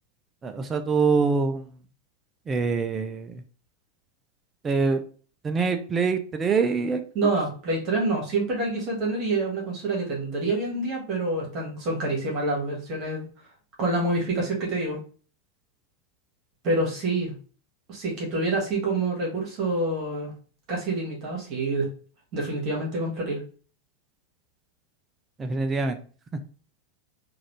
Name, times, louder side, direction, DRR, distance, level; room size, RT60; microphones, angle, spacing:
voice 1, 0.4-1.7 2.5-3.4 4.6-5.0 5.4-7.0 25.4-26.0 26.3-26.4, right 4 dB, 20° right, 7 dB, 0.4 m, -24 dB
voice 2, 7.2-13.3 13.8-15.0 16.6-17.3 17.9-20.3 20.7-21.9 22.3-23.4, right 2 dB, 35° right, -2 dB, 1.7 m, -27 dB
3.8 x 2.5 x 3.1 m, 0.40 s
figure-of-eight pair, 90°, 0 cm